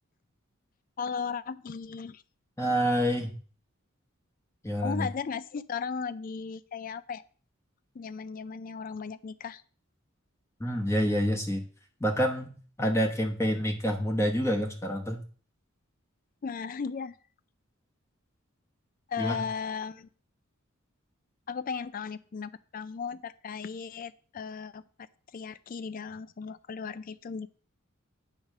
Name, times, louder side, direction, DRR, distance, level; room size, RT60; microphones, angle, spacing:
voice 1, 1.0-2.2 4.8-7.2 7.9-9.6 16.4-17.2 19.1-20.1 21.5-24.8 25.3-27.5, left 6 dB, 40° left, 16 dB, 0.4 m, -36 dB
voice 2, 2.6-3.3 4.6-5.1 10.6-11.6 12.0-15.2 19.2-19.4, equal, 15° left, 2 dB, 0.9 m, -27 dB
9.2 x 4.7 x 6.4 m, 0.42 s
head